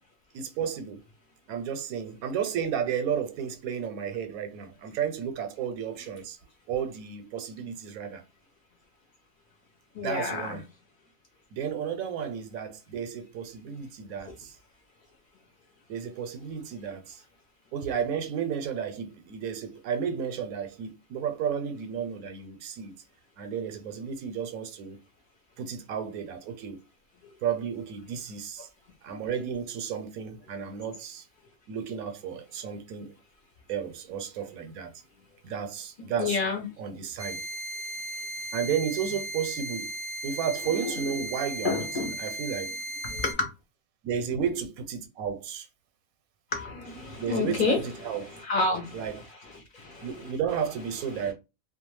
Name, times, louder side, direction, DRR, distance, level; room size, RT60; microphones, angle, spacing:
voice 1, 0.3-1.0 1.5-6.4 6.7-8.2 10.0-10.6 11.5-14.6 15.9-17.2 17.7-22.9 23.4-25.0 25.6-26.8 27.4-28.7 29.0-31.2 31.7-33.1 33.7-34.9 35.4-36.4 36.8-37.4 38.5-39.9 40.2-42.8 44.0-45.7 47.2-48.3 48.9-49.2 50.0-51.3, right 7 dB, 90° right, 1.1 m, -33 dB
voice 2, 9.9-10.6 36.2-36.7 38.6-38.8 39.0-39.2 40.6-41.2 41.6-42.1 43.0-43.5 46.5-51.3, left 3 dB, 50° left, 0.7 m, -31 dB
sound 1, 37.2-43.3, right 1 dB, 10° left, 0.3 m, -36 dB
2.3 x 2.3 x 3.0 m
omnidirectional pair, 1.4 m